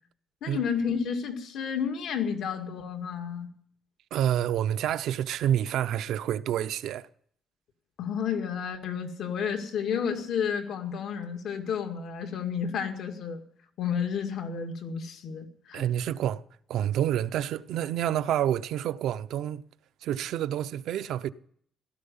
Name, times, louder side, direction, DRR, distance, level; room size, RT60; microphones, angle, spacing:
voice 1, 0.4-3.5 8.0-13.4 13.8-15.8, left 7 dB, 70° left, 2.1 m, -31 dB
voice 2, 4.1-7.0 15.7-16.4 16.7-19.6 20.0-21.3, right 11 dB, 80° right, 0.7 m, -28 dB
17.0 x 12.5 x 5.5 m
cardioid pair, 135°, 0 cm